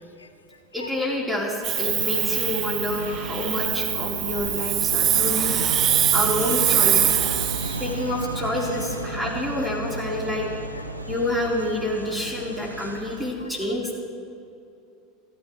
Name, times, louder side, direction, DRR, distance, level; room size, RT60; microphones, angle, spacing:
voice 1, 0.7-5.6 6.1-7.2 7.8-10.5 11.1-14.0, left 1 dB, 5° right, -3 dB, 3.9 m, -28 dB
Hiss, 1.6-7.9, right 11 dB, 40° right, 0.5 m, -23 dB
sound 1, 1.8-13.3, right 2 dB, 85° right, 0.7 m, -33 dB
voice 2, 10.7-11.2 13.6-13.7, left 2 dB, 85° left, 7 dB, 0.6 m, -43 dB
26.5 x 14.0 x 3.2 m, 2.6 s
figure-of-eight pair, 75°, 0 cm